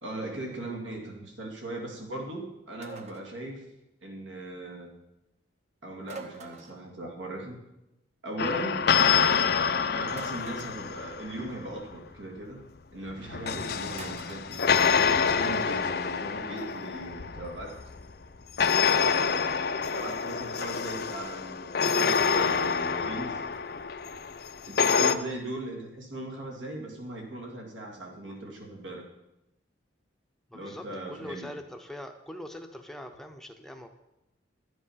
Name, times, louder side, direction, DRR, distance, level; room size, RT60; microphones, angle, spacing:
voice 1, 0.0-3.7 4.0-4.9 5.8-7.6 8.2-8.9 9.8-12.6 12.9-14.8 15.1-17.9 18.9-19.5 19.9-23.4 24.7-29.0 30.5-31.5, right 1 dB, 80° right, 1 dB, 2.3 m, -39 dB
sound 1, 2.8-3.3 6.0-6.9 10.1-10.8 13.9-14.5, right 4 dB, 35° right, 0.8 m, -45 dB
sound 2, 8.4-11.6 13.1-18.0 18.6-25.1, left 6 dB, 55° left, 0.5 m, -27 dB
voice 2, 30.5-33.9, left 1 dB, ahead, 4 dB, 0.7 m, -42 dB
12.0 x 7.8 x 5.7 m, 0.93 s
head